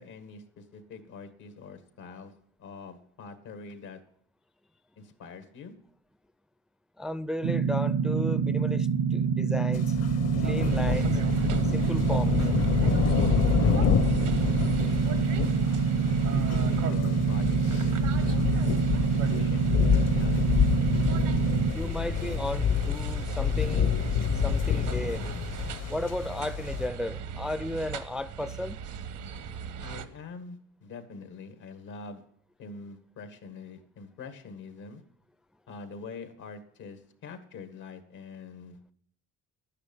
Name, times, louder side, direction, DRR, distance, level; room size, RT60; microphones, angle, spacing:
voice 1, 0.0-2.3 2.6-4.0 5.0-5.7 13.6-15.7 16.1-18.5 19.1-20.6 29.8-32.2 32.6-35.0 35.7-38.9, left 4 dB, 85° left, 1.9 m, -44 dB
voice 2, 7.0-10.0 10.4-11.2 11.6-12.5 21.7-23.9 24.4-25.3 25.9-28.8, left 1 dB, ahead, 0.4 m, -34 dB
sound 1, 7.4-21.7, right 6 dB, 65° right, 0.6 m, -26 dB
sound 2, 9.7-26.9, left 8 dB, 55° left, 0.8 m, -28 dB
sound 3, 10.4-30.1, right 7 dB, 85° right, 1.2 m, -38 dB
11.5 x 9.8 x 5.5 m
cardioid pair, 90°, 30 cm